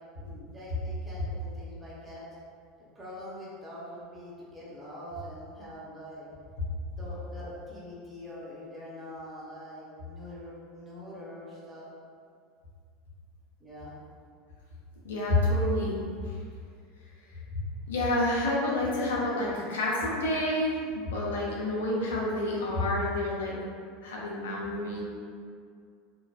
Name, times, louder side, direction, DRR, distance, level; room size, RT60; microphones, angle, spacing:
voice 1, 0.2-2.3 2.8-6.3 7.0-11.9 13.6-14.0, equal, 15° right, -9 dB, 0.8 m, -44 dB
voice 2, 15.0-16.0 17.9-23.5 24.0-25.0, left 1 dB, 70° left, -4 dB, 0.5 m, -28 dB
3.0 x 2.1 x 2.3 m, 2.3 s
figure-of-eight pair, 75°, 0 cm